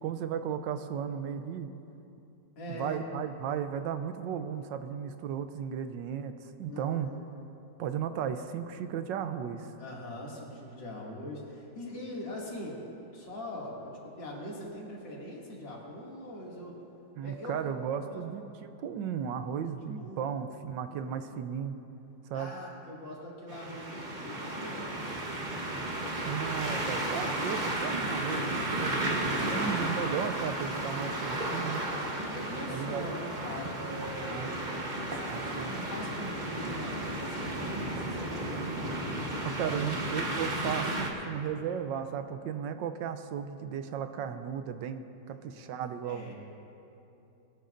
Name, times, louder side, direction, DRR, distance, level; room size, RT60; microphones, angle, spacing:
voice 1, 0.0-1.7 2.7-7.1 7.8-9.7 17.2-21.8 22.3-22.5 26.3-31.8 32.7-33.1 34.2-35.0 35.3-35.7 39.4-46.3, right 8 dB, 80° right, 9 dB, 1.3 m, -35 dB
voice 2, 2.6-3.0 6.7-7.2 9.8-16.7 17.2-18.2 20.0-20.2 20.9-21.2 22.3-25.0 28.2-28.4 28.8-29.6 32.3-34.6 35.0-39.0 39.6-39.8 45.3-45.5 46.0-46.3, left 1 dB, 75° left, -4 dB, 3.1 m, -42 dB
sound 1, 23.5-41.1, right 1 dB, 30° right, 1.0 m, -33 dB
21.5 x 12.5 x 2.6 m, 2.8 s
omnidirectional pair, 2.0 m